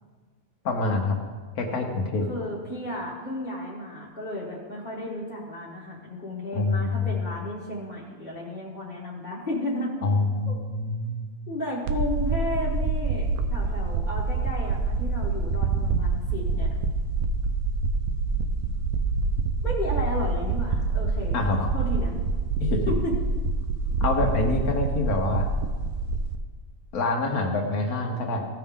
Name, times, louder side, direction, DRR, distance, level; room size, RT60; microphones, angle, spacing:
voice 1, 0.6-1.2 1.6-2.3 6.5-7.0 10.0-11.3 21.3-21.7 22.6-22.8 24.0-25.4 26.9-28.5, left 3 dB, 85° left, 1 dB, 1.5 m, -26 dB
voice 2, 2.3-9.9 10.5-10.6 11.5-16.7 19.6-21.4 21.7-22.2 22.9-23.1, left 1 dB, 35° left, -6 dB, 1.5 m, -33 dB
sound 1, 11.9-26.4, right 4 dB, 80° right, 1.1 m, -26 dB
15.5 x 5.7 x 3.6 m, 1.4 s
omnidirectional pair, 1.5 m